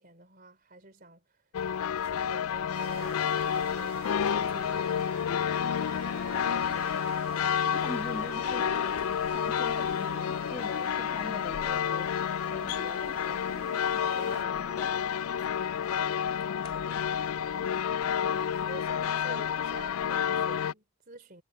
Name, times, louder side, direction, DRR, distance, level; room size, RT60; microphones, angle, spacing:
voice 1, 0.0-1.4 2.0-6.1 6.5-6.7 16.7-21.4, right 2 dB, 40° right, 3.3 m, -50 dB
sound 1, 1.5-20.7, left 8 dB, 85° left, 0.4 m, -30 dB
sound 2, 2.7-14.4, right 5 dB, 80° right, 1.2 m, -46 dB
voice 2, 7.7-9.0 9.3-14.9, equal, 5° left, 1.7 m, -44 dB
sound 3, 8.7-9.7 11.5-11.6 12.0-13.1 13.6-13.9 15.2-15.3 16.4-17.1 18.8-19.0 19.5-19.8, left 3 dB, 25° left, 3.0 m, -57 dB
head